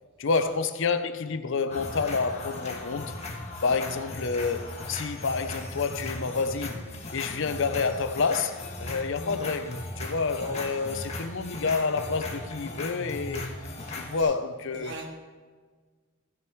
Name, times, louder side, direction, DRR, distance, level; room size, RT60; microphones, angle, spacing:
voice 1, 0.2-3.2 3.6-6.8 7.1-13.4 13.9-14.9, left 4 dB, 65° left, 0.6 m, -28 dB
sound 1, 1.7-14.2, left 2 dB, 30° left, 1.4 m, -37 dB
voice 2, 14.7-15.1, right 2 dB, 60° right, 1.8 m, -41 dB
15.0 x 6.4 x 4.6 m
head